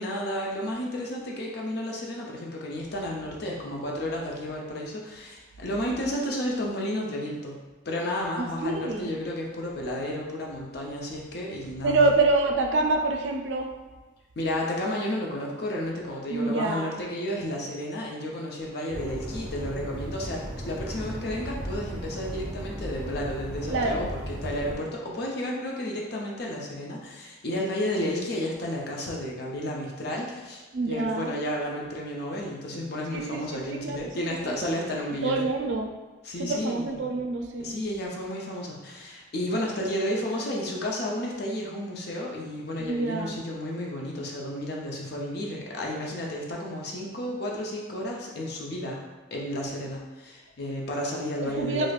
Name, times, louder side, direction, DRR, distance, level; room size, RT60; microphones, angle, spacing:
voice 1, 0.0-7.5 7.9-12.1 14.4-35.5 36.2-37.1 37.6-49.0 49.3-51.9, left 1 dB, 60° left, -2 dB, 0.6 m, -32 dB
voice 2, 8.4-9.1 11.8-13.7 16.3-17.0 23.7-24.1 30.7-31.4 33.1-34.6 35.2-35.9 36.4-37.7 42.8-43.4 51.4-51.9, right 3 dB, 75° right, 3 dB, 0.4 m, -27 dB
sound 1, 18.9-24.7, right 1 dB, 5° right, 0.8 m, -36 dB
4.8 x 2.1 x 2.4 m, 1.2 s
head